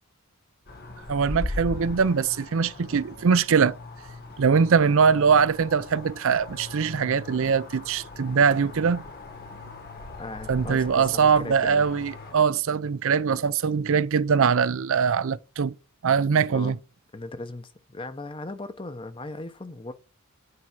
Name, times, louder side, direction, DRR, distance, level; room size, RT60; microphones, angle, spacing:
sound 1, 0.7-12.3, left 2 dB, 45° left, 1.6 m, -39 dB
voice 1, 1.1-3.8 4.4-9.0 10.5-15.7 16.0-16.8, right 6 dB, 60° right, 0.5 m, -22 dB
voice 2, 10.2-11.8 16.5-16.8 17.1-19.9, left 2 dB, 25° left, 0.8 m, -38 dB
9.7 x 4.6 x 6.0 m
head